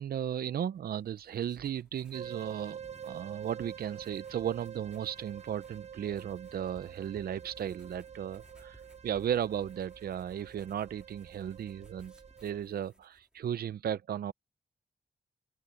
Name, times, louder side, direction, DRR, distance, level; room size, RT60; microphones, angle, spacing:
voice 1, 0.0-2.8 3.0-12.1 12.4-14.3, right 9 dB, 75° right, 0.5 m, -35 dB
sound 1, 0.8-13.5, right 1 dB, 5° right, 2.3 m, -61 dB
sound 2, 2.1-12.6, right 8 dB, 45° right, 1.1 m, -47 dB
open air
wide cardioid pair, 115°, 16 cm